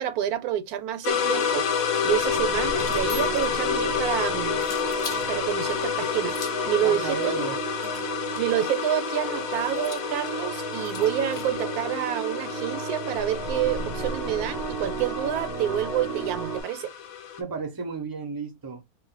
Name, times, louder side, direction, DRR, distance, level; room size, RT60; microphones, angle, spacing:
voice 1, 0.0-4.6 5.3-7.3 8.4-16.9, right 11 dB, 80° right, 1.0 m, -28 dB
Synth with reverb artifacts, 1.0-17.4, left 8 dB, 70° left, 1.0 m, -30 dB
sound 1, 1.1-16.6, right 4 dB, 30° left, 1.0 m, -34 dB
sound 2, 2.7-3.6 4.6-5.3 6.2-6.7 7.8-8.6 9.8-11.6, left 4 dB, 55° left, 0.6 m, -41 dB
voice 2, 6.8-7.6 17.4-18.8, right 5 dB, 35° right, 0.3 m, -33 dB
2.5 x 2.0 x 3.8 m
omnidirectional pair, 1.6 m